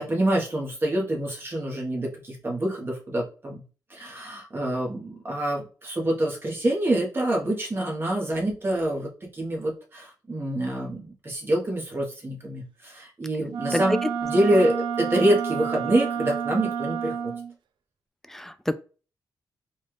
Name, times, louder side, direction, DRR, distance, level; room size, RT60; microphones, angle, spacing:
voice 1, 0.0-3.6 3.9-17.3, right 1 dB, 30° right, 1.2 m, -26 dB
Wind instrument woodwind instrument, 13.5-17.5, right 7 dB, 85° right, 0.4 m, -30 dB
voice 2, 13.7-14.1 18.3-18.8, left 1 dB, 5° left, 0.3 m, -27 dB
4.2 x 2.4 x 3.2 m
cardioid pair, 90°, 8 cm